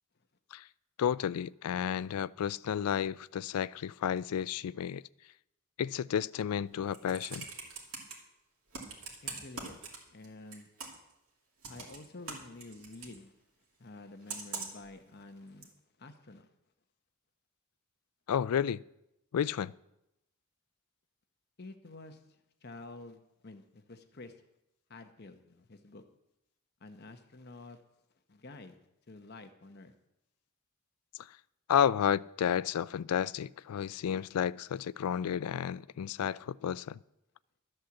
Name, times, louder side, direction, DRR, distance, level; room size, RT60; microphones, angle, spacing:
voice 1, 1.0-5.0 5.8-7.4 18.3-18.8 19.3-19.7 31.7-37.0, left 8 dB, 80° left, 0.3 m, -31 dB
Computer keyboard, 6.7-8.1 8.7-10.3 10.5-11.1 11.6-13.2 14.3-14.9 15.6-15.7, right 4 dB, 75° right, 2.7 m, -42 dB
voice 2, 9.2-9.8 10.1-10.7 11.7-13.3 13.8-16.5 21.6-24.4 24.9-26.0 26.8-27.8 28.3-28.8 29.1-29.9, left 2 dB, 45° left, 0.9 m, -50 dB
13.0 x 7.8 x 7.1 m
head